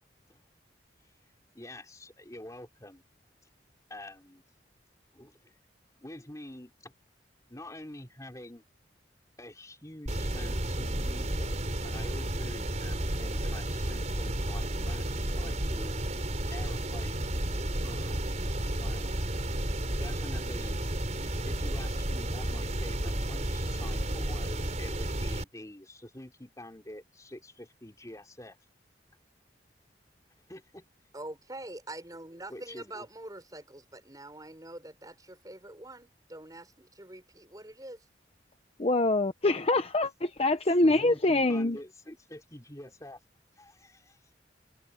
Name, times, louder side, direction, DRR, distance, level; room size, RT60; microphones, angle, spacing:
voice 1, 1.5-3.0 3.9-4.4 5.1-5.6 6.0-7.0 7.5-8.7 9.4-11.6 11.8-16.1 16.5-18.3 18.6-19.1 20.0-20.8 21.5-28.6 30.5-30.9 32.5-33.1 40.8-43.2 43.6-44.2, left 1 dB, 20° left, 3.7 m, -47 dB
sound 1, 10.1-25.4, right 1 dB, 40° right, 4.9 m, -32 dB
voice 2, 31.1-38.1, right 1 dB, 20° right, 6.3 m, -45 dB
voice 3, 38.8-41.8, left 2 dB, 35° left, 0.9 m, -25 dB
head